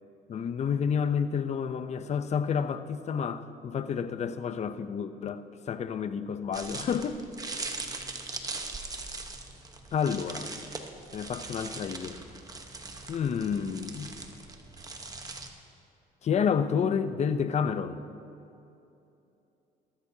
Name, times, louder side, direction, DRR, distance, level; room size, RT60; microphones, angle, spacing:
voice 1, 0.3-7.2 7.5-7.8 9.9-10.5 11.1-12.2 13.1-14.2 16.2-18.0, left 7 dB, 40° left, 11 dB, 0.6 m, -30 dB
sound 1, 6.5-15.5, right 3 dB, 20° right, 1.1 m, -40 dB
19.5 x 13.0 x 2.8 m, 2.8 s
cardioid pair, 110°, 17 cm